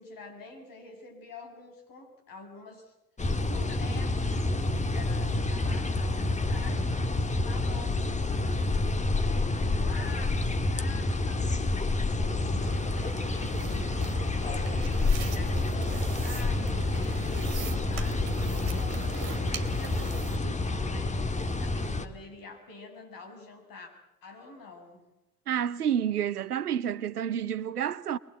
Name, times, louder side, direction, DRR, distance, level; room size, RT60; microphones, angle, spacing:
voice 1, 0.0-2.9 3.5-23.9 24.2-25.0, left 3 dB, 50° left, 7.2 m, -47 dB
sound 1, 3.2-22.1, left 2 dB, 15° left, 1.6 m, -28 dB
sound 2, 12.6-20.4, right 7 dB, 55° right, 2.5 m, -42 dB
voice 2, 25.5-28.2, right 9 dB, 80° right, 0.8 m, -29 dB
24.0 x 21.5 x 8.2 m
figure-of-eight pair, 55°, 45 cm